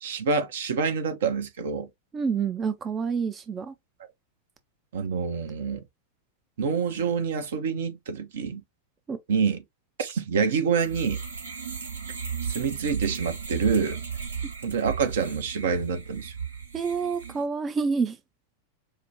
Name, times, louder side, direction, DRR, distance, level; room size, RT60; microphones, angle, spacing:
voice 1, 0.0-1.9 4.9-5.8 6.6-8.6 9.3-9.6 10.0-11.2 12.4-14.0 14.6-16.3, right 5 dB, 60° right, 0.7 m, -27 dB
voice 2, 2.1-3.7 9.1-9.2 16.7-18.2, right 5 dB, 20° right, 0.4 m, -28 dB
sound 1, 10.8-17.4, right 6 dB, 75° right, 1.1 m, -35 dB
4.9 x 2.1 x 2.9 m
figure-of-eight pair, 90°, 0 cm